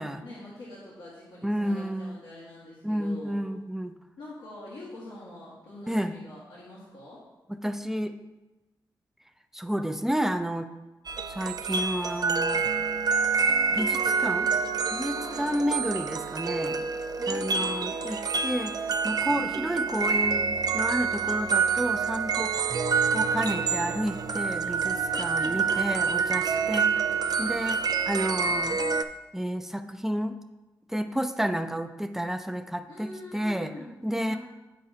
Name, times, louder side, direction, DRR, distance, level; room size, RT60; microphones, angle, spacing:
voice 1, 0.0-3.5 4.2-7.2 15.1-15.6 16.1-16.9 17.2-18.1 25.0-25.6 26.6-27.1 32.9-34.4, left 1 dB, 90° left, -8 dB, 1.5 m, -45 dB
voice 2, 1.4-2.2 2.8-3.9 5.9-6.1 7.5-8.1 9.5-10.7 11.3-12.7 13.7-14.5 14.9-16.8 17.3-18.7 19.0-22.5 23.1-26.9 27.4-28.8 29.3-30.4 30.9-33.7 34.0-34.4, equal, 5° right, 8 dB, 0.6 m, -31 dB
sound 1, 11.1-29.0, right 5 dB, 55° right, 0.4 m, -27 dB
9.0 x 4.7 x 2.8 m, 1.1 s
cardioid pair, 50°, 8 cm